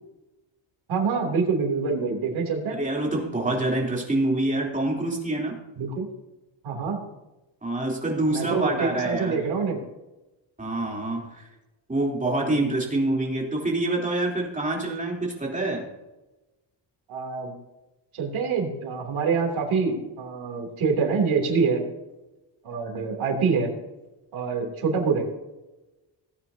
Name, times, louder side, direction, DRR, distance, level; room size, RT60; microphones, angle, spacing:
voice 1, 0.9-2.8 5.8-6.1 6.6-7.0 8.3-9.8 12.5-12.6 17.1-17.5 18.1-21.8 22.6-23.7 24.3-25.2, right 5 dB, 85° right, 2 dB, 3.2 m, -25 dB
voice 2, 2.7-5.6 7.6-9.4 10.6-11.3 11.9-15.8, right 2 dB, 15° right, -2 dB, 3.5 m, -26 dB
18.0 x 9.5 x 2.8 m, 1.0 s
cardioid pair, 120°, 47 cm